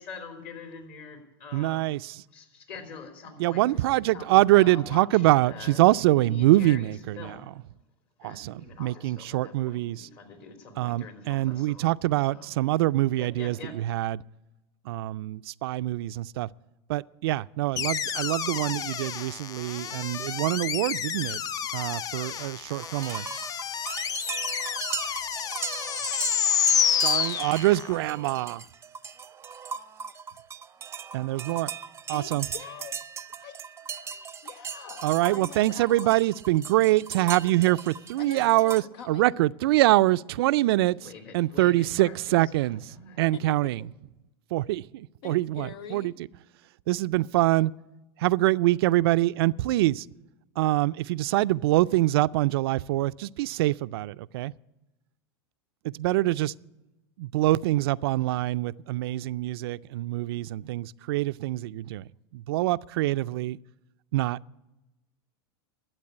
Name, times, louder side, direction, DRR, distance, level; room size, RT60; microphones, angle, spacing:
voice 1, 0.0-1.8 2.3-5.8 6.2-7.4 8.2-11.9 12.3-12.5 13.2-13.7 41.0-42.4 42.9-43.3, left 4 dB, 50° left, 3.4 m, -45 dB
voice 2, 1.5-2.2 3.4-7.5 8.2-10.1 10.8-14.2 14.9-16.5 16.9-21.4 21.7-23.3 26.9-28.6 31.1-31.7 32.1-32.5 35.0-43.8 44.5-46.1 46.9-47.7 48.2-50.1 50.6-54.5 55.8-56.5 57.2-62.0 62.3-63.6 64.1-64.4, right 17 dB, 70° right, 0.4 m, -25 dB
sound 1, 17.8-28.0, left 8 dB, 30° left, 0.4 m, -29 dB
sound 2, 22.7-38.8, right 7 dB, 20° right, 0.6 m, -38 dB
voice 3, 32.1-36.2 38.2-39.4 43.3-43.7 45.2-46.1, left 8 dB, 70° left, 0.7 m, -44 dB
12.0 x 8.4 x 9.6 m
supercardioid pair, 115°, 13 cm